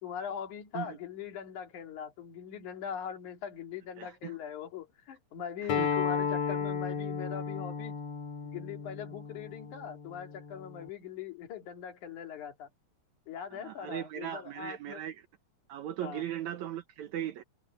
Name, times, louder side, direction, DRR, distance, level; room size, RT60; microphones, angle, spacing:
voice 1, 0.0-8.0 8.4-12.7 13.3-15.0 16.0-16.3, left 8 dB, 80° left, 3.7 m, -41 dB
voice 2, 4.0-4.3 5.6-5.9 13.5-15.2 15.7-17.4, right 11 dB, 75° right, 2.3 m, -38 dB
Acoustic guitar, 5.7-10.9, left 6 dB, 60° left, 3.1 m, -34 dB
open air
omnidirectional pair, 3.4 m